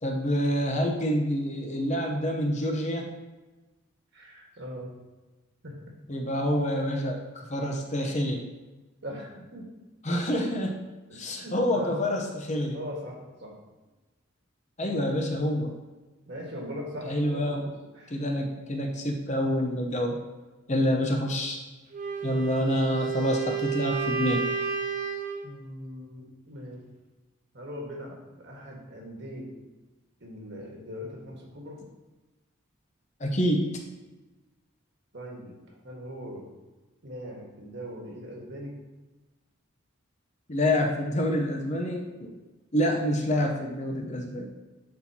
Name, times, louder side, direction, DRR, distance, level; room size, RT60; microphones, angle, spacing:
voice 1, 0.0-3.1 6.1-8.4 10.0-10.7 11.1-12.8 14.8-15.7 17.0-17.7 18.1-20.2 20.7-21.6 22.2-24.5 33.2-33.8 40.5-42.3 42.7-44.5, equal, 35° left, 2 dB, 0.8 m, -27 dB
voice 2, 4.1-4.9 5.6-5.9 9.0-9.7 11.1-12.0 12.7-13.5 16.3-18.4 20.7-21.0 25.4-26.8 27.5-29.5 30.2-31.8 35.1-36.4 37.0-38.7, equal, 55° right, -1 dB, 1.6 m, -40 dB
Wind instrument woodwind instrument, 21.9-25.5, right 6 dB, 40° right, 0.7 m, -31 dB
11.0 x 4.3 x 2.8 m, 1.2 s
head